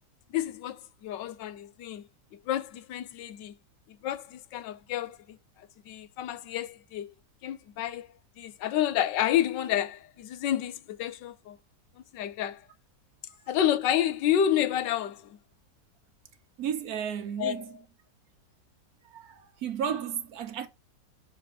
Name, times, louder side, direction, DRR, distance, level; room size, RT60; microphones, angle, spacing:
voice 1, 0.3-3.6 3.9-7.1 7.4-11.6 12.1-12.7 13.5-15.4 17.4-17.8, left 11 dB, 85° left, 1.4 m, -30 dB
voice 2, 16.6-17.7 19.0-20.7, right 8 dB, 60° right, 1.3 m, -33 dB
6.9 x 4.1 x 4.6 m
omnidirectional pair, 1.9 m